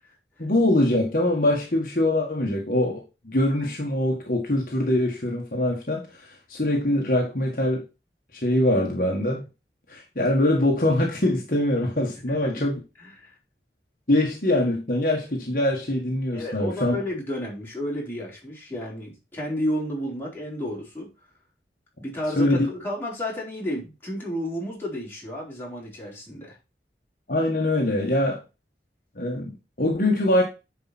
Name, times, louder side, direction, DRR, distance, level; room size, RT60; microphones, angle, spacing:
voice 1, 0.4-7.8 8.3-9.4 9.9-12.8 14.1-17.0 22.4-22.7 27.3-28.4 29.2-30.4, left 1 dB, 50° left, 1.7 m, -23 dB
voice 2, 12.3-12.6 13.0-13.3 16.3-21.1 22.0-26.6, left 1 dB, 10° left, 4.3 m, -32 dB
10.5 x 5.0 x 4.3 m
head